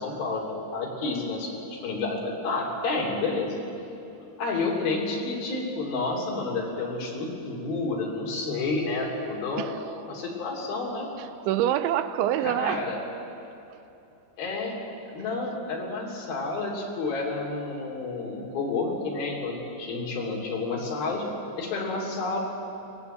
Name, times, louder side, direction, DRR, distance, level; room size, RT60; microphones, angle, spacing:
voice 1, 0.0-3.5 4.4-9.7 10.0-11.1 12.4-13.0 14.4-14.8 15.1-21.3 21.6-22.4, left 3 dB, 55° left, -1 dB, 4.7 m, -30 dB
voice 2, 9.6-10.1 11.2-12.9 13.7-13.8, right 11 dB, 85° right, 12 dB, 3.1 m, -27 dB
23.5 x 19.0 x 7.9 m, 2.9 s
omnidirectional pair, 5.3 m